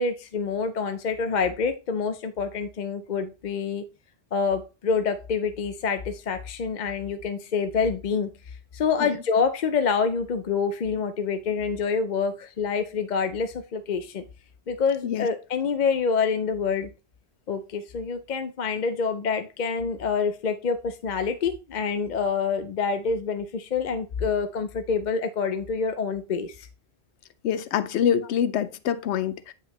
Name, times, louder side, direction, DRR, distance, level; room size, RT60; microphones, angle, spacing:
voice 1, 0.0-3.8 4.3-8.3 8.7-14.2 14.7-16.9 17.5-26.7, left 5 dB, 50° left, 0.6 m, -27 dB
voice 2, 27.4-29.5, left 9 dB, 85° left, 0.8 m, -25 dB
9.1 x 5.6 x 3.1 m
omnidirectional pair, 1.1 m